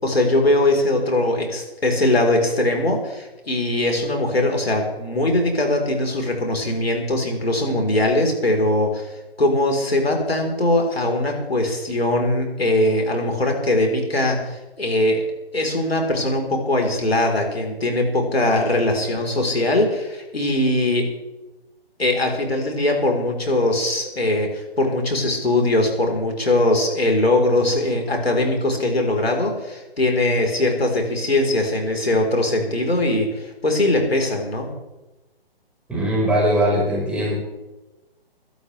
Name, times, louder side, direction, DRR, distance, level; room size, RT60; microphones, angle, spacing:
voice 1, 0.0-15.2 15.5-21.1 22.0-34.7, left 1 dB, 75° left, 2 dB, 4.2 m, -21 dB
voice 2, 35.9-37.4, right 1 dB, 5° right, -6 dB, 4.9 m, -20 dB
23.5 x 12.0 x 3.4 m, 1.1 s
figure-of-eight pair, 135°, 31 cm